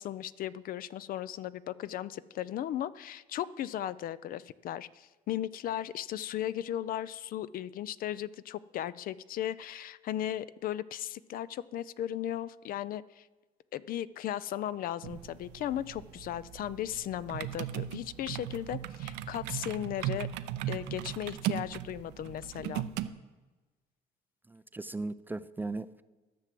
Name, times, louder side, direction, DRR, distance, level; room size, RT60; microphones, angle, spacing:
voice 1, 0.0-13.3 13.7-20.3 20.7-22.9, left 11 dB, 60° left, 17 dB, 0.4 m, -36 dB
sound 1, 15.0-23.1, right 12 dB, 85° right, 0.6 m, -38 dB
voice 2, 24.5-26.0, right 2 dB, 10° right, 14 dB, 0.3 m, -37 dB
13.0 x 6.0 x 7.6 m, 1.2 s
cardioid pair, 110°, 17 cm